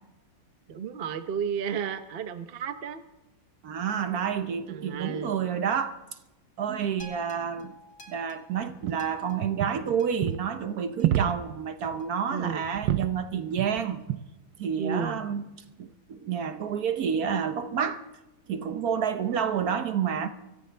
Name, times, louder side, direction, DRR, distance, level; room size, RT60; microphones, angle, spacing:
voice 1, 0.7-3.0 4.7-5.4 11.2-11.3 12.3-12.6 14.8-15.2, right 7 dB, 45° right, 0.8 m, -32 dB
voice 2, 3.6-6.0 6.6-7.8 8.1-14.0 14.6-15.4 15.8-18.0 18.5-20.3, right 7 dB, 60° right, 1.2 m, -29 dB
sound 1, 7.0-11.3 12.0-12.1, left 3 dB, 70° left, 2.6 m, -51 dB
sound 2, 8.7-9.0 9.4-9.9 10.2-10.4 11.0-11.5 11.8-12.0 12.4-13.1 13.5-13.8 14.1-14.3 15.0-15.2, right 12 dB, 85° right, 1.4 m, -28 dB
24.5 x 14.0 x 3.3 m
omnidirectional pair, 2.0 m